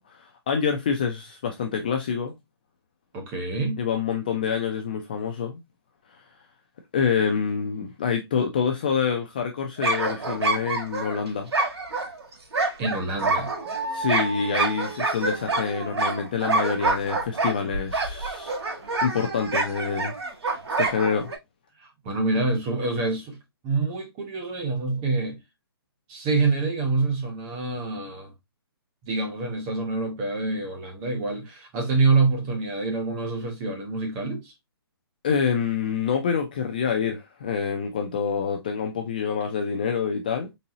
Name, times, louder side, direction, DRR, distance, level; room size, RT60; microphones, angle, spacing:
voice 1, 0.1-2.3 3.8-5.6 6.1-6.2 6.9-11.5 13.9-18.5 19.0-20.1 20.8-21.3 35.2-40.5, left 6 dB, 20° left, 0.3 m, -26 dB
voice 2, 3.1-3.8 12.8-13.5 21.8-23.4 23.6-25.4 26.1-28.3 29.0-34.5, right 3 dB, 15° right, 0.8 m, -26 dB
sound 1, 9.8-21.4, right 3 dB, 90° right, 1.9 m, -27 dB
4.0 x 3.7 x 2.7 m
hypercardioid pair, 170°, 13 cm